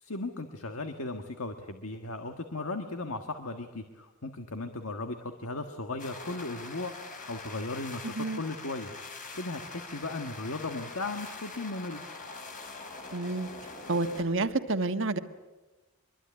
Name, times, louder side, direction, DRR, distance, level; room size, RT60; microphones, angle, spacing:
voice 1, 0.0-6.9 7.3-8.9 9.3-12.0, left 2 dB, 65° left, 6 dB, 1.7 m, -36 dB
sound 1, 6.0-14.2, left 3 dB, 35° left, 4.5 m, -44 dB
voice 2, 8.0-8.4 13.1-13.5 13.9-15.2, right 3 dB, 55° right, 8 dB, 1.5 m, -29 dB
25.0 x 23.0 x 9.9 m, 1.2 s
head